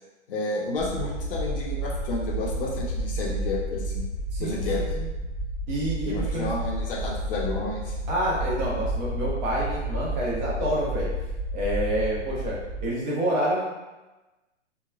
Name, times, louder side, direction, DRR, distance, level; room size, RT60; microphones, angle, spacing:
voice 1, 0.3-4.0 4.4-4.8 6.1-8.0, left 2 dB, 50° left, -3 dB, 0.7 m, -31 dB
sound 1, 0.8-12.9, right 1 dB, 10° left, 1.0 m, -31 dB
voice 2, 4.3-5.1 5.7-6.5 8.1-11.1 11.5-12.5 12.8-13.7, right 1 dB, 40° right, -6 dB, 0.9 m, -28 dB
2.9 x 2.2 x 2.3 m, 1.1 s
hypercardioid pair, 130°, 37 cm